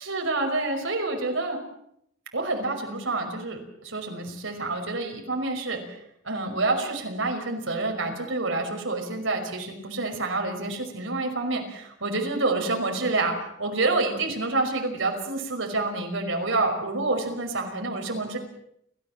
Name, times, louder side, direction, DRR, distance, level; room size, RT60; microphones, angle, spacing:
voice 1, 0.0-1.6 2.3-6.0 6.2-18.4, right 2 dB, 75° right, 3 dB, 5.5 m, -28 dB
30.0 x 15.0 x 7.5 m, 0.75 s
head